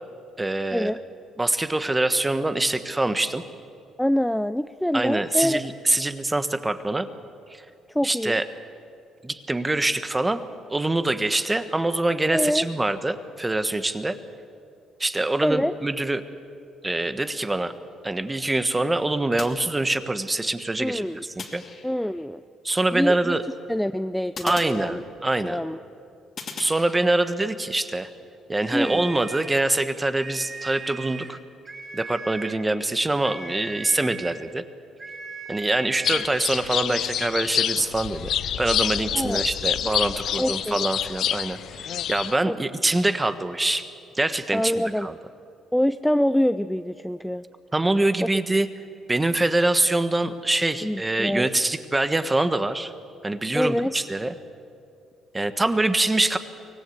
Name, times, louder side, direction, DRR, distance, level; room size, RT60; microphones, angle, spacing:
voice 1, 0.4-0.9 1.4-3.4 4.9-7.1 7.5-7.6 8.0-8.5 9.2-10.4 10.7-14.2 15.0-16.2 16.8-17.7 18.0-21.6 22.6-23.4 24.4-25.6 26.6-28.1 28.5-31.4 31.9-34.6 35.5-43.9 44.1-45.2 47.7-48.7 49.1-52.9 53.2-54.3 55.3-56.4, right 2 dB, 15° right, 11 dB, 1.3 m, -24 dB
voice 2, 4.0-5.6 7.9-8.4 12.3-12.6 15.4-15.7 20.8-21.2 21.8-22.4 22.9-23.3 23.7-25.0 25.4-25.8 28.7-29.1 39.1-39.5 40.4-40.9 42.5-42.6 44.5-45.1 45.7-47.4 50.8-51.5 53.5-53.9, equal, 5° left, 12 dB, 0.4 m, -25 dB
sound 1, 19.4-20.3 21.4-22.3 24.4-25.5 26.4-27.4, left 5 dB, 50° left, 2.5 m, -40 dB
sound 2, 28.6-29.7 30.1-31.4 31.6-32.6 33.2-34.4 35.0-36.3, right 3 dB, 30° right, 2.6 m, -38 dB
sound 3, 36.0-42.4, left 10 dB, 65° left, 0.5 m, -27 dB
24.0 x 18.0 x 8.0 m, 2.6 s
cardioid pair, 90°, 0 cm